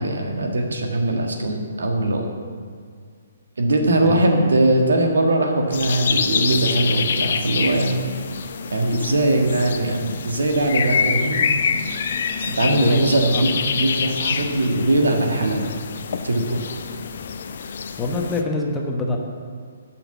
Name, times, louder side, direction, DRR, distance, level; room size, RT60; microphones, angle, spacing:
voice 1, 0.0-2.3 3.6-8.2 8.7-11.5 12.4-15.7 16.2-16.6, right 1 dB, 65° right, 2 dB, 1.6 m, -20 dB
sound 1, 5.7-18.4, left 6 dB, 50° left, 0.6 m, -26 dB
voice 2, 12.7-13.0 13.3-13.4 18.0-19.2, left 2 dB, 10° left, -1 dB, 1.2 m, -24 dB
10.5 x 6.0 x 7.2 m, 2.1 s
figure-of-eight pair, 130°, 0 cm